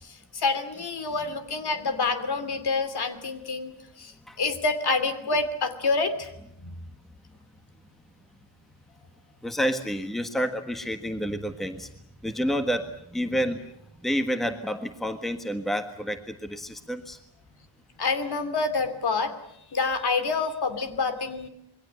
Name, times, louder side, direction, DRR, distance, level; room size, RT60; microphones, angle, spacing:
voice 1, 0.0-4.1 4.4-6.3 6.6-6.7 18.0-19.3 19.7-21.5, left 4 dB, 55° left, 11 dB, 2.9 m, -27 dB
voice 2, 9.4-11.9 12.2-13.6 14.0-17.2, equal, ahead, 7 dB, 1.5 m, -29 dB
27.5 x 22.5 x 8.1 m, 0.76 s
wide cardioid pair, 180°, 47 cm